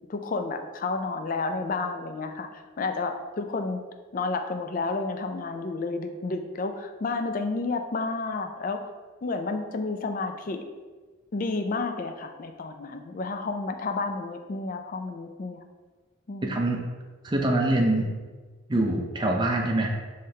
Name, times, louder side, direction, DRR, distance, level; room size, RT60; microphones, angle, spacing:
voice 1, 0.1-3.8 4.1-8.8 9.2-10.6 11.3-15.6 16.3-16.6, left 3 dB, 40° left, 6 dB, 0.3 m, -31 dB
voice 2, 16.4-16.8 17.2-18.1 18.7-19.9, right 1 dB, 20° right, 1 dB, 0.5 m, -24 dB
5.5 x 3.2 x 2.8 m, 1.4 s
head